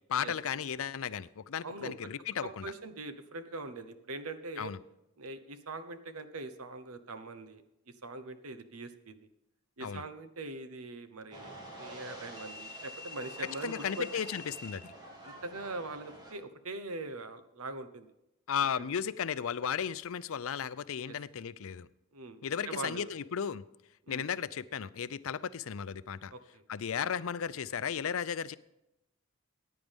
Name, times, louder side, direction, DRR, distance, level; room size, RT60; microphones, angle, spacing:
voice 1, 0.1-2.7 4.6-4.8 9.8-10.0 13.6-14.9 18.5-21.9 22.4-23.6 24.1-26.3 26.7-28.6, left 7 dB, 75° left, 17 dB, 0.5 m, -35 dB
voice 2, 1.6-1.9 2.4-4.7 5.2-7.6 8.0-9.1 9.8-11.5 11.8-14.1 15.2-18.1 18.8-18.9 21.1-21.2 22.1-22.4 22.7-23.1 24.1-24.2 26.3-26.6, right 2 dB, 85° right, 10 dB, 1.1 m, -42 dB
sound 1, 11.3-16.3, left 1 dB, 20° right, 2.1 m, -46 dB
15.0 x 9.4 x 3.6 m, 0.88 s
head